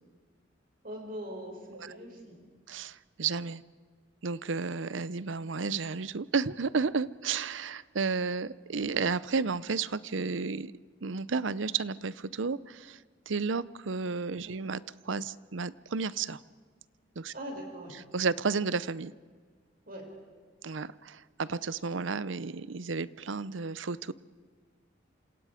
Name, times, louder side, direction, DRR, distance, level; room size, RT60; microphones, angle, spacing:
voice 1, 0.8-2.4 14.4-14.6 17.3-18.0 19.9-20.1, equal, 50° right, 1 dB, 6.5 m, -42 dB
voice 2, 2.7-3.6 4.2-10.7 11.0-13.0 13.3-14.8 15.1-16.4 17.2-17.3 18.1-19.1 20.6-24.1, right 4 dB, 80° right, 18 dB, 0.7 m, -32 dB
28.0 x 27.0 x 5.1 m, 1.5 s
head